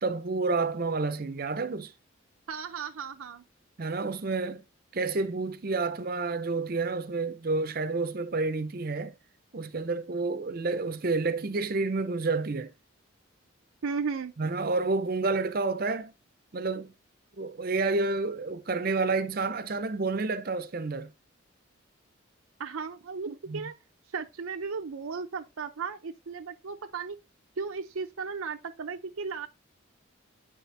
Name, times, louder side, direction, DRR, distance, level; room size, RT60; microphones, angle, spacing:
voice 1, 0.0-1.9 3.8-4.6 4.9-9.1 9.5-12.7 14.4-16.1 16.5-16.9 17.4-21.1 23.5-23.7, right 3 dB, 45° right, 0.6 m, -29 dB
voice 2, 2.5-3.4 13.8-14.3 22.6-23.7 24.1-27.2 27.6-29.5, right 5 dB, 85° right, 0.6 m, -35 dB
8.7 x 4.2 x 3.3 m
head